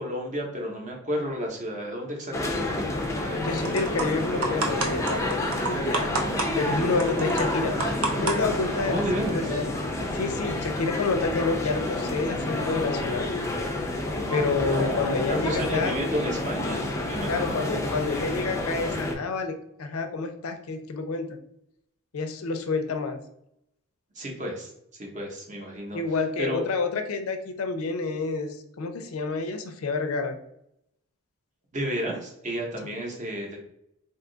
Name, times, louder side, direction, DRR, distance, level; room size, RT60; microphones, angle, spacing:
voice 1, 0.0-2.9 8.8-9.4 14.7-17.8 24.2-26.0 26.4-26.6 31.7-33.6, equal, 35° right, 1 dB, 0.7 m, -32 dB
sound 1, 2.3-19.1, left 2 dB, 15° left, 0.4 m, -29 dB
sound 2, 3.0-9.5, right 3 dB, 80° right, 0.6 m, -33 dB
voice 2, 3.4-6.1 6.5-7.9 8.2-9.7 10.1-13.3 14.3-15.9 17.3-21.4 22.1-23.2 25.9-30.4 32.8-32.9, left 3 dB, 80° left, 8 dB, 0.4 m, -29 dB
2.7 x 2.3 x 3.7 m, 0.77 s
head